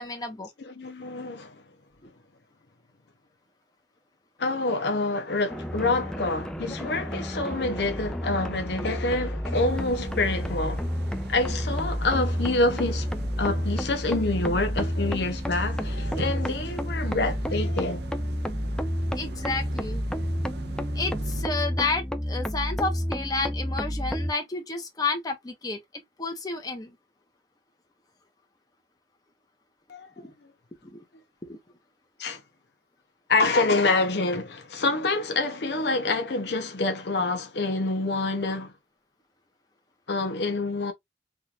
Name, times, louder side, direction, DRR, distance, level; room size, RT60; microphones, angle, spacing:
voice 1, 0.0-0.5 19.2-20.0 20.9-27.0 30.2-30.3 30.8-31.0 31.4-31.6, left 3 dB, 20° left, 1.0 m, -31 dB
voice 2, 0.6-1.6 4.4-10.8 11.3-13.1 13.4-18.0 29.9-30.3 32.2-32.4 33.3-38.7 40.1-40.9, left 2 dB, 65° left, 0.7 m, -27 dB
sound 1, 5.5-24.3, equal, 5° left, 0.4 m, -30 dB
sound 2, 9.5-21.5, right 3 dB, 65° right, 0.6 m, -40 dB
3.7 x 2.4 x 2.8 m
head